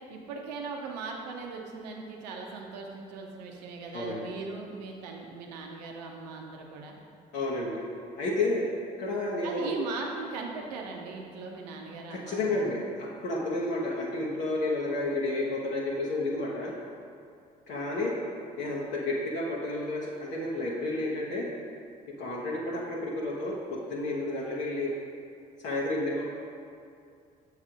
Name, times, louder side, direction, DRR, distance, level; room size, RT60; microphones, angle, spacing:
voice 1, 0.1-7.0 9.4-12.8, right 4 dB, 85° right, 1 dB, 0.7 m, -39 dB
voice 2, 7.3-7.9 8.2-8.7 9.0-9.7 12.1-16.7 17.7-18.1 18.6-21.5 22.2-24.9 25.6-26.2, left 2 dB, 65° left, -6 dB, 0.9 m, -31 dB
7.4 x 3.2 x 5.0 m, 2.4 s
hypercardioid pair, 55°, 20 cm